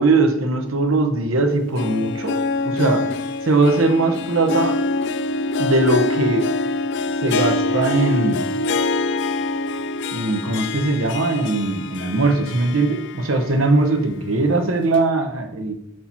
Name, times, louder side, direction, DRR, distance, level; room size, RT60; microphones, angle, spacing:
voice 1, 0.0-3.0 3.5-4.7 5.6-6.4 7.2-8.4 10.1-15.7, right 2 dB, 80° right, 5 dB, 0.9 m, -20 dB
Harp, 1.5-13.6 14.0-14.1 14.9-15.0, left 3 dB, 60° left, 0.4 m, -25 dB
6.5 x 4.2 x 4.4 m, 0.77 s
head